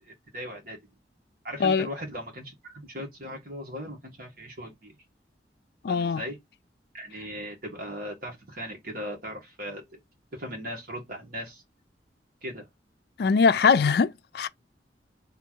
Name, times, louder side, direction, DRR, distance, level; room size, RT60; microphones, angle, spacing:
voice 1, 0.0-0.8 1.4-4.9 5.9-6.4 6.9-10.0 10.3-11.6 12.4-12.7, equal, 55° right, 1.6 m, -38 dB
voice 2, 5.8-6.2 13.2-14.5, left 5 dB, 60° left, 0.4 m, -22 dB
3.4 x 2.5 x 4.5 m
head